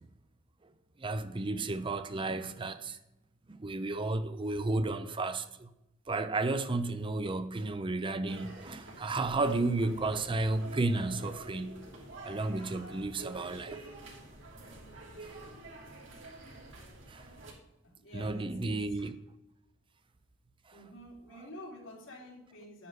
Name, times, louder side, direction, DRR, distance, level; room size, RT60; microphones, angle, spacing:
voice 1, 1.0-3.0 3.5-5.7 6.1-11.8 12.2-13.8 15.2-15.3 17.1-17.3 18.1-19.1, right 2 dB, 25° right, 0.6 m, -32 dB
sound 1, 8.3-17.5, right 2 dB, 80° right, 3.1 m, -48 dB
voice 2, 17.8-19.1 20.7-22.9, left 1 dB, 85° left, 3.2 m, -49 dB
11.0 x 9.6 x 4.0 m
head